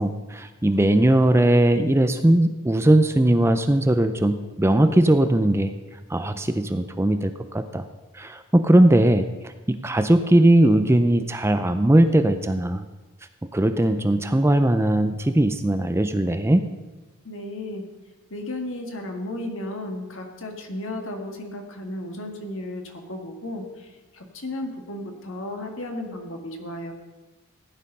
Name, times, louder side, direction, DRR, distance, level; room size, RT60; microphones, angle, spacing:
voice 1, 0.0-5.7 6.1-7.8 8.1-12.8 13.5-16.7, right 1 dB, 10° right, 9 dB, 0.5 m, -19 dB
voice 2, 17.2-17.9 18.3-26.9, left 1 dB, 60° left, 3 dB, 1.9 m, -34 dB
15.5 x 9.8 x 5.5 m, 1.2 s
head